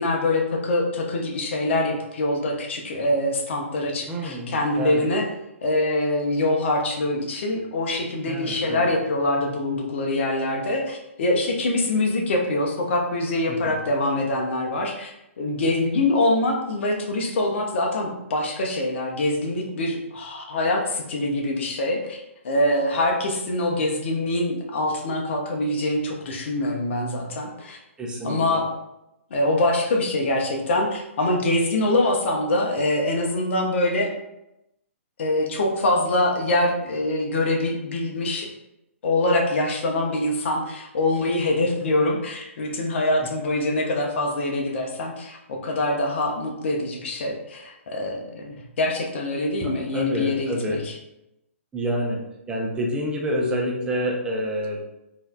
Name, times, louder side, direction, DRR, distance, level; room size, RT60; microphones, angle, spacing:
voice 1, 0.0-5.2 5.6-27.8 28.2-28.7 29.3-34.1 35.2-38.5 39.0-50.8, left 1 dB, 55° left, 2 dB, 0.8 m, -24 dB
voice 2, 4.1-5.1 8.2-8.9 13.5-13.8 28.0-28.6 49.6-50.9 51.7-52.2 52.5-54.8, equal, 10° right, -2 dB, 0.7 m, -28 dB
4.1 x 2.8 x 2.5 m, 0.87 s
hypercardioid pair, 135°, 7 cm